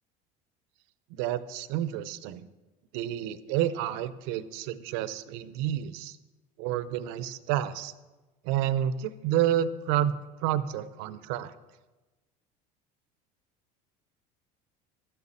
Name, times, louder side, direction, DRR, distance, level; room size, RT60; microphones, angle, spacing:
voice 1, 1.1-2.5 2.9-6.2 6.6-7.9 8.4-11.5, right 11 dB, 75° right, 14 dB, 0.7 m, -29 dB
12.0 x 6.8 x 7.3 m, 1.2 s
supercardioid pair, 115°, 19 cm